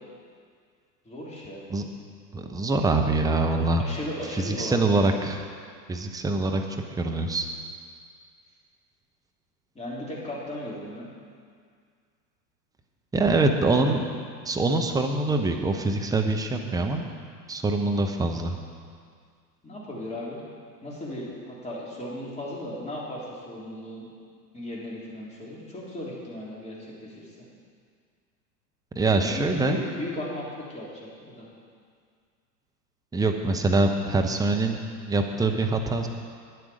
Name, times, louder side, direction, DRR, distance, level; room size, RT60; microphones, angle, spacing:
voice 1, 1.1-1.7 3.8-5.1 9.8-11.1 19.6-20.4 20.8-24.1 24.5-27.5 29.1-31.5, left 1 dB, 15° left, -6 dB, 3.5 m, -36 dB
voice 2, 2.3-3.8 4.3-5.4 5.9-6.6 7.0-7.5 13.1-14.0 14.4-17.0 17.5-18.6 28.9-29.8 33.1-34.8 35.1-36.1, right 2 dB, 5° right, 3 dB, 0.8 m, -24 dB
12.0 x 9.6 x 5.1 m, 2.1 s
hypercardioid pair, 95°, 50 cm